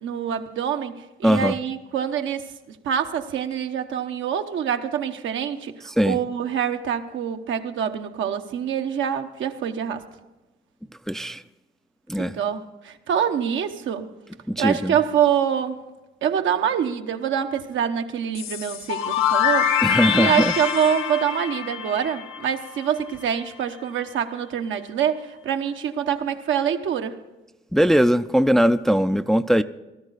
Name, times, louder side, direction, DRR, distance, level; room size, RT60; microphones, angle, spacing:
voice 1, 0.0-0.9 1.2-10.0 12.2-14.1 14.6-15.8 16.2-19.7 20.1-27.2, right 8 dB, 75° right, 1.0 m, -25 dB
voice 2, 1.2-1.5 5.9-6.2 11.1-11.4 12.1-12.4 14.5-15.0 19.8-20.5 27.7-29.6, equal, ahead, 0.4 m, -20 dB
sound 1, 18.3-23.1, left 8 dB, 85° left, 1.0 m, -25 dB
18.0 x 13.0 x 4.1 m
cardioid pair, 90°, 20 cm